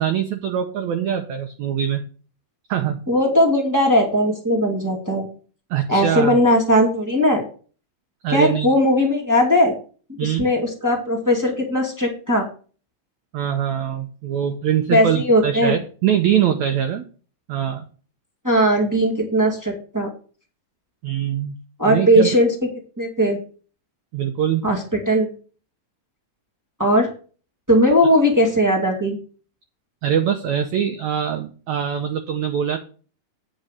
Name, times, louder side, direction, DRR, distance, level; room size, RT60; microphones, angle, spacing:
voice 1, 0.0-2.0 2.7-3.0 5.7-6.4 8.2-8.7 10.2-10.5 13.3-17.1 17.5-17.9 21.0-21.5 21.9-22.3 24.1-24.7 30.0-32.8, right 9 dB, 75° right, 6 dB, 1.7 m, -23 dB
voice 2, 3.1-5.3 5.9-7.4 8.3-9.8 10.1-12.5 14.9-15.7 18.4-20.1 21.8-22.5 23.0-23.4 24.6-25.3 26.8-27.1 27.7-29.2, equal, 10° right, -1 dB, 1.0 m, -18 dB
9.0 x 5.4 x 6.4 m, 0.39 s
omnidirectional pair, 4.1 m